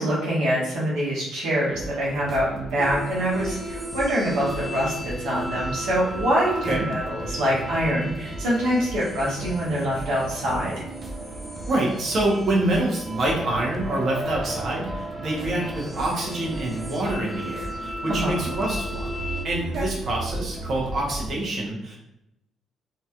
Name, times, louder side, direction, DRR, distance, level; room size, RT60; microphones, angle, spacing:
voice 1, 0.0-10.7 18.1-18.4 19.7-19.9, equal, 75° right, -6 dB, 1.3 m, -25 dB
sound 1, 1.7-21.4, right 2 dB, 40° right, 0.7 m, -37 dB
sound 2, 2.8-19.5, equal, ahead, 0.4 m, -36 dB
voice 2, 11.7-19.1 19.4-22.0, right 1 dB, 55° right, -3 dB, 1.1 m, -26 dB
3.0 x 2.9 x 2.4 m, 0.84 s
hypercardioid pair, 55°, 0 cm